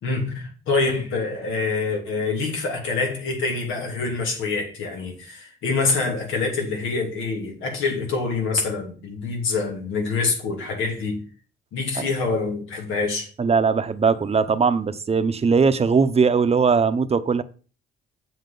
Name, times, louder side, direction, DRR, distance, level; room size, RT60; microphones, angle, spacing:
voice 1, 0.0-11.2 11.7-13.3, left 4 dB, 85° left, 2.8 m, -26 dB
voice 2, 13.4-17.4, right 5 dB, 30° right, 0.8 m, -20 dB
8.0 x 7.5 x 3.9 m
cardioid pair, 90°, 20 cm